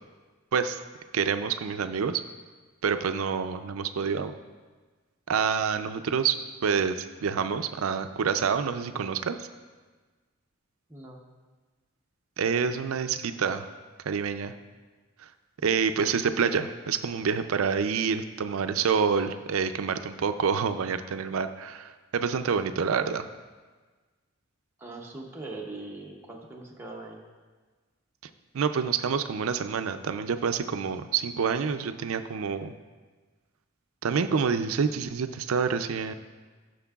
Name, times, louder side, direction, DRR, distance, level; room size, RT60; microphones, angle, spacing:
voice 1, 1.1-2.2 2.8-4.3 5.3-9.5 12.4-13.7 14.1-14.5 15.6-23.2 28.5-32.7 34.0-36.1, right 6 dB, 85° right, 10 dB, 0.4 m, -27 dB
voice 2, 10.9-11.2 24.8-27.2, right 2 dB, 10° right, -2 dB, 0.7 m, -41 dB
13.5 x 6.5 x 2.3 m, 1.4 s
head